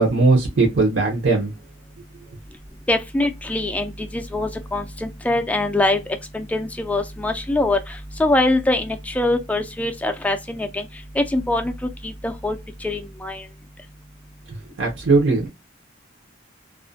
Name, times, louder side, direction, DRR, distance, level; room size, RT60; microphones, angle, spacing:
voice 1, 0.0-1.5 14.8-15.5, right 3 dB, 65° right, 0.6 m, -18 dB
voice 2, 2.9-6.0 6.3-10.9 11.2-11.7 12.0-13.4, left 2 dB, 5° left, 0.3 m, -23 dB
2.4 x 2.1 x 2.5 m
head